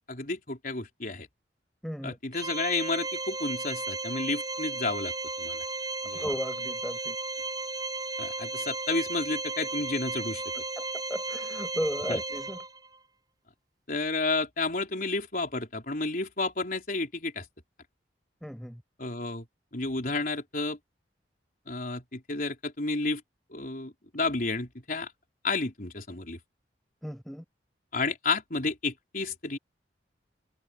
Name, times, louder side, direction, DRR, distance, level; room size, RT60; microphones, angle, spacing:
voice 1, 0.1-1.3 2.0-5.1 5.4-5.6 6.0-6.2 8.2-10.4 12.1-12.2 13.9-17.4 19.0-19.4 19.7-20.8 21.7-23.2 23.5-25.1 25.4-26.4 27.9-29.6, left 3 dB, 50° left, 4.3 m, -31 dB
voice 2, 1.8-2.2 6.1-7.2 10.5-10.8 11.1-12.6 18.4-18.8 27.0-27.4, equal, ahead, 7.9 m, -35 dB
Organ, 2.3-13.0, right 3 dB, 25° right, 7.1 m, -35 dB
head